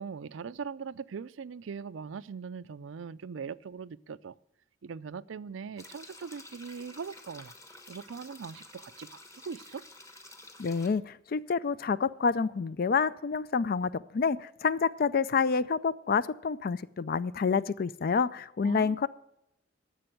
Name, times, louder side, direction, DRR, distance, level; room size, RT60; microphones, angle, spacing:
voice 1, 0.0-4.4 4.8-7.5 7.9-9.8 18.6-19.0, right 6 dB, 80° right, 0.4 m, -41 dB
sound 1, 5.8-10.9, left 2 dB, 15° left, 1.1 m, -50 dB
voice 2, 10.6-19.1, left 5 dB, 50° left, 0.4 m, -28 dB
11.5 x 6.9 x 7.7 m
head